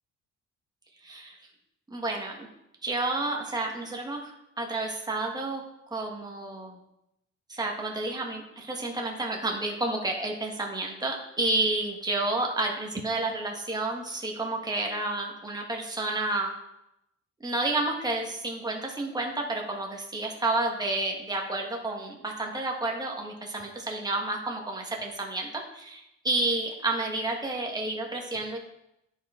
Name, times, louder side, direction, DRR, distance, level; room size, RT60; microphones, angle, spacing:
voice 1, 1.0-1.4 1.9-2.5 2.8-5.6 5.9-6.8 7.5-16.5 17.4-28.6, right 2 dB, 15° right, 0 dB, 1.6 m, -30 dB
10.0 x 4.8 x 3.8 m, 0.84 s
cardioid pair, 90°, 30 cm